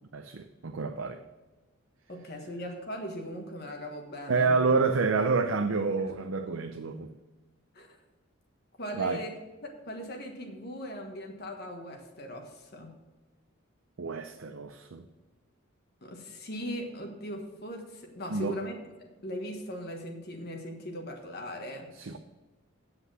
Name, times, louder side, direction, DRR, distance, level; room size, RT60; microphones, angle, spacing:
voice 1, 0.1-1.2 4.3-7.1 9.0-9.2 14.0-15.1 18.3-18.6 22.0-22.2, right 4 dB, 75° right, 0.6 m, -28 dB
voice 2, 2.1-4.6 6.0-6.1 7.7-8.0 8.8-13.0 16.0-21.9, equal, 50° left, 1.5 m, -39 dB
8.3 x 7.9 x 6.2 m
head